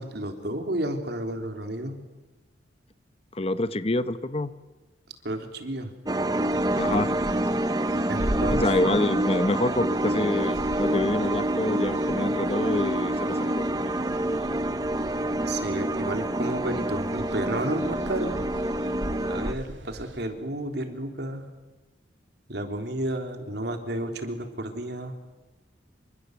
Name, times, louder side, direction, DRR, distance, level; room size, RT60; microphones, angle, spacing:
voice 1, 0.0-2.0 5.2-5.9 8.1-8.6 15.5-18.3 19.3-21.5 22.5-25.2, right 1 dB, 60° right, 6 dB, 3.6 m, -32 dB
voice 2, 3.3-4.5 6.7-7.1 8.6-13.7, left 2 dB, 30° left, 13 dB, 0.9 m, -27 dB
sound 1, 6.1-19.5, right 1 dB, 20° right, 0.9 m, -27 dB
sound 2, 6.3-20.2, right 1 dB, 90° right, 3.5 m, -40 dB
27.0 x 26.0 x 8.0 m, 1.2 s
head